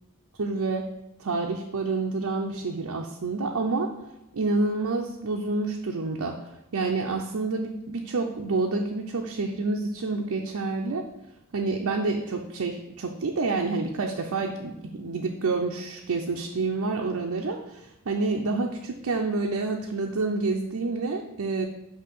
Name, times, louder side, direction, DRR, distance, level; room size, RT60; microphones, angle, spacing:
voice 1, 0.4-0.9 1.2-3.9 4.3-6.4 6.7-11.0 11.5-21.7, right 3 dB, 70° right, 1 dB, 0.6 m, -28 dB
8.3 x 2.8 x 5.3 m, 0.89 s
head